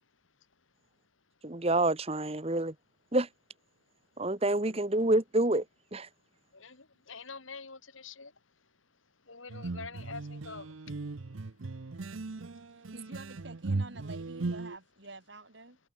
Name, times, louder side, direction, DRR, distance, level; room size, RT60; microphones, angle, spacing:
voice 1, 1.4-2.7 3.1-3.3 4.2-5.6 5.9-6.1, right 2 dB, 30° right, 1.3 m, -27 dB
voice 2, 6.5-8.7 9.2-11.1 12.5-12.7, left 4 dB, 90° left, 3.3 m, -46 dB
sound 1, 9.5-14.8, right 3 dB, 90° right, 0.8 m, -37 dB
voice 3, 12.4-15.8, right 2 dB, 65° right, 6.3 m, -49 dB
head